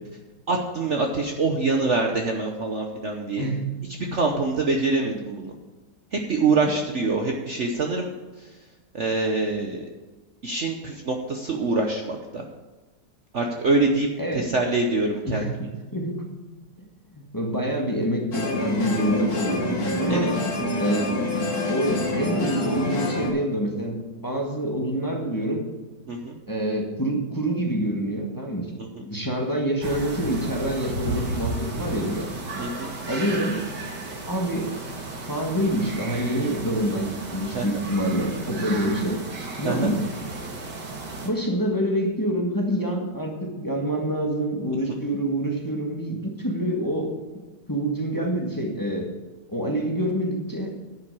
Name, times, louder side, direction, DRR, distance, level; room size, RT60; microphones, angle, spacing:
voice 1, 0.5-3.5 4.1-5.5 6.1-8.1 8.4-8.6 8.9-9.9 10.4-12.4 13.3-14.1 14.3-15.5 20.1-20.3 26.1-26.4 28.8-29.0 32.6-32.9 37.5-37.8 39.6-39.9, right 3 dB, 50° right, 2 dB, 1.0 m, -25 dB
voice 2, 15.2-16.2 17.1-20.3 20.8-21.2 21.7-24.0 24.2-25.6 26.5-28.7 29.0-32.3 33.1-33.6 34.3-34.7 35.3-39.2 39.6-40.0 41.2-47.1 47.7-49.1 49.5-50.7, right 1 dB, 10° left, 0 dB, 1.5 m, -26 dB
sound 1, 18.3-23.3, left 2 dB, 60° left, 2.2 m, -26 dB
sound 2, 29.8-41.3, right 2 dB, 70° right, 2.2 m, -34 dB
10.5 x 5.9 x 8.3 m, 1.2 s
omnidirectional pair, 1.9 m